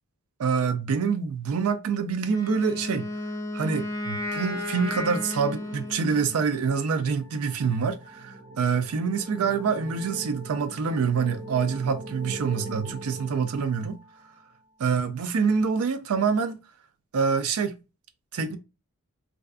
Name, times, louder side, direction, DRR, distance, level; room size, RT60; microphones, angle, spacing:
voice 1, 0.4-3.1 3.5-14.0 14.8-16.6 17.1-17.8 18.3-18.6, right 5 dB, 85° right, 0.4 m, -26 dB
Wind instrument woodwind instrument, 2.2-6.4, left 1 dB, 15° left, 0.4 m, -33 dB
sound 1, 3.8-14.3, right 2 dB, 30° right, 0.7 m, -43 dB
2.6 x 2.3 x 2.3 m
head